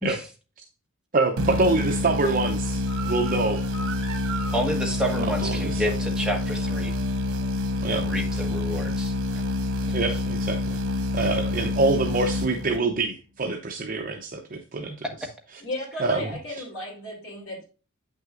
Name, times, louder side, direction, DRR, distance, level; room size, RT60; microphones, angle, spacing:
voice 1, 1.1-3.7 5.2-5.8 7.8-8.0 9.9-10.8 11.1-15.0 16.0-16.3, right 3 dB, 40° right, 2 dB, 0.7 m, -25 dB
sound 1, 1.4-13.1, left 2 dB, 90° right, 0.9 m, -27 dB
sound 2, 2.9-8.4, right 4 dB, 65° right, 1.9 m, -41 dB
voice 2, 4.5-7.0 7.9-9.2, equal, 5° right, 0 dB, 1.3 m, -29 dB
voice 3, 15.6-17.6, left 1 dB, 65° left, -4 dB, 2.9 m, -35 dB
8.2 x 6.2 x 2.5 m, 0.34 s
head